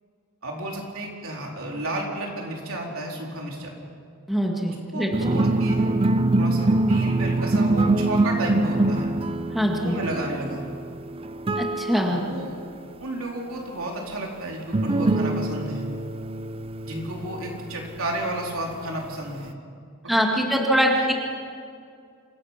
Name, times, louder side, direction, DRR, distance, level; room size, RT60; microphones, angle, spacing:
voice 1, 0.4-3.8 4.7-5.9 6.4-9.1 9.7-10.8 12.1-12.6 13.0-15.9 16.8-19.5 20.0-21.1, right 1 dB, 70° right, -1 dB, 4.0 m, -32 dB
voice 2, 4.3-5.4 9.5-9.9 11.6-12.2 20.1-21.1, equal, ahead, -1 dB, 1.9 m, -23 dB
sound 1, 5.1-12.5 14.7-18.7, right 2 dB, 25° right, 0.5 m, -24 dB
27.0 x 16.5 x 5.9 m, 2.3 s
head